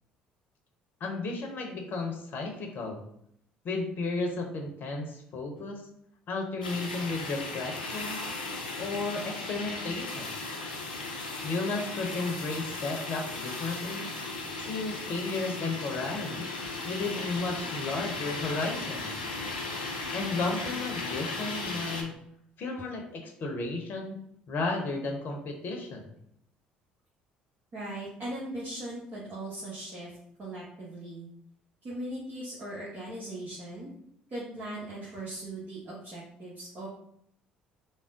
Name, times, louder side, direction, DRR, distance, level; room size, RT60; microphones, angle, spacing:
voice 1, 1.0-3.0 3.6-5.8 6.3-8.2 8.8-10.4 11.4-14.1 14.6-16.5 16.8-19.2 20.1-22.1 22.6-24.2 24.5-26.0, left 3 dB, 45° left, 2 dB, 0.7 m, -33 dB
sound 1, 6.6-22.0, left 3 dB, 85° left, 0.5 m, -36 dB
voice 2, 27.7-31.3 31.8-33.9 34.3-36.9, right 1 dB, 40° right, -6 dB, 1.0 m, -39 dB
3.5 x 2.1 x 3.7 m, 0.71 s
figure-of-eight pair, 55°, 4 cm